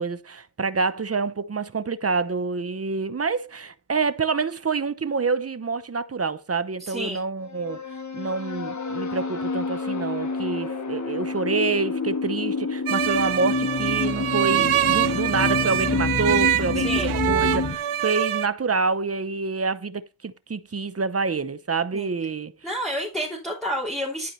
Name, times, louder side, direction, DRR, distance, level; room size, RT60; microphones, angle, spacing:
voice 1, 0.0-7.8 8.1-22.5, right 4 dB, 30° right, 0.9 m, -27 dB
voice 2, 6.8-7.2 16.8-17.1 21.9-22.1 22.6-24.3, equal, ahead, 3.3 m, -29 dB
sound 1, 7.5-17.8, left 4 dB, 35° left, 1.7 m, -28 dB
sound 2, 12.9-18.5, right 12 dB, 85° right, 0.8 m, -24 dB
11.5 x 4.7 x 4.2 m
cardioid pair, 65°, 49 cm